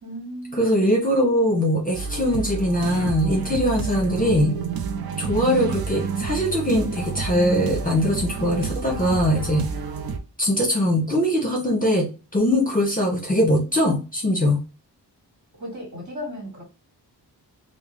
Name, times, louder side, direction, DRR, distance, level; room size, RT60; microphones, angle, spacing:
voice 1, 0.0-0.7 15.6-16.6, equal, 45° right, 1.7 m, -35 dB
voice 2, 0.6-4.6 5.2-9.6 10.4-14.6, equal, 20° left, 1.0 m, -21 dB
sound 1, 1.9-10.2, right 5 dB, 60° right, 0.5 m, -29 dB
3.5 x 2.1 x 3.0 m
wide cardioid pair, 80°, 42 cm